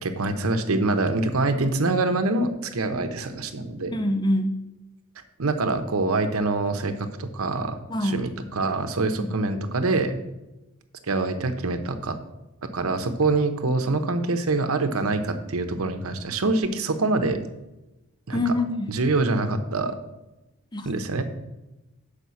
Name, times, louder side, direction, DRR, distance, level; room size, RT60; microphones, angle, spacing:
voice 1, 0.0-3.9 5.4-10.2 11.1-12.2 12.7-17.4 18.3-18.5 18.9-19.9 20.8-21.2, right 3 dB, 80° right, 7 dB, 0.8 m, -25 dB
voice 2, 3.9-4.6 7.9-8.3 9.2-9.4 18.3-19.0 20.7-20.9, left 1 dB, 20° left, 8 dB, 0.6 m, -25 dB
6.9 x 5.0 x 6.3 m, 1.0 s
head